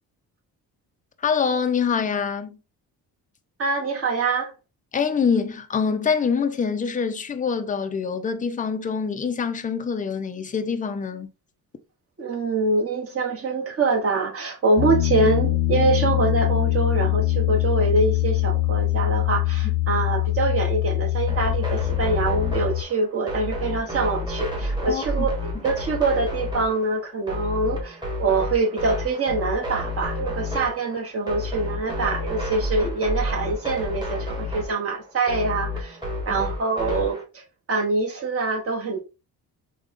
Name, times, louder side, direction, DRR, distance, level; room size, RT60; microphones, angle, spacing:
voice 1, 1.2-2.6 4.9-11.3 24.9-25.0, left 6 dB, 20° left, 0.4 m, -25 dB
voice 2, 3.6-4.5 12.2-36.0 36.2-37.4 37.7-39.0, right 3 dB, 35° right, 1.3 m, -24 dB
Piano, 14.8-22.8, left 18 dB, 75° left, 0.6 m, -23 dB
sound 1, 21.3-37.2, left 1 dB, 10° right, 1.3 m, -30 dB
3.6 x 2.2 x 3.6 m
cardioid pair, 115°, 38 cm